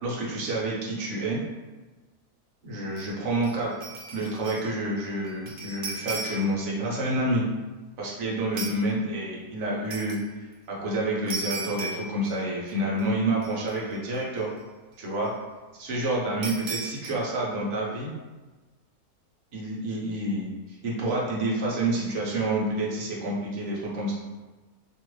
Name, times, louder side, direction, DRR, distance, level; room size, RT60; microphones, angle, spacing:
voice 1, 0.0-1.4 2.6-3.7 4.1-7.4 8.0-10.2 10.7-14.5 15.0-15.3 15.7-18.1 19.5-24.1, right 1 dB, 55° right, -4 dB, 1.0 m, -28 dB
sound 1, 2.9-3.1 3.4-4.7 5.0-6.6 8.6-8.8 9.9-10.2 11.3-12.7 13.0-13.1 13.4-14.2 16.4-17.1, right 3 dB, 80° right, 0.5 m, -36 dB
2.9 x 2.5 x 3.1 m, 1.2 s
omnidirectional pair, 1.6 m